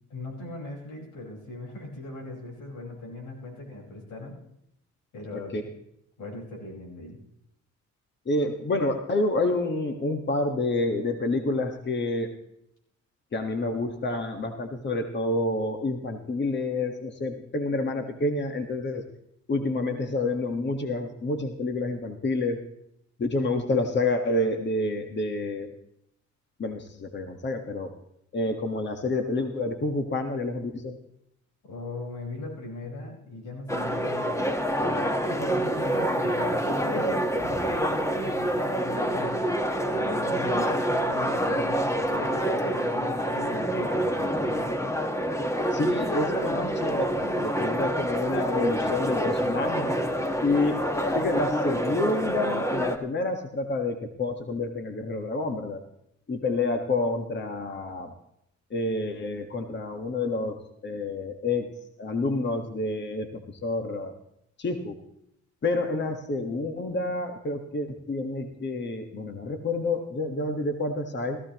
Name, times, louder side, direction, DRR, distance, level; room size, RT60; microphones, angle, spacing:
voice 1, 0.1-4.4 5.1-5.7 6.2-7.2 31.6-34.4 34.8-39.4 39.9-44.7, left 2 dB, 85° left, -1 dB, 5.2 m, -40 dB
voice 2, 8.3-12.3 13.3-19.0 19.5-22.6 23.2-25.7 26.6-27.9 28.3-31.0 45.7-49.9 50.4-50.9 51.1-55.8 56.3-58.1 58.7-60.6 60.8-61.7 62.0-64.1 64.6-64.9 65.6-71.4, left 2 dB, 35° left, 5 dB, 1.6 m, -28 dB
sound 1, 33.7-53.0, equal, 10° left, 1.4 m, -27 dB
17.5 x 15.0 x 3.0 m, 0.77 s
cardioid pair, 90°, 30 cm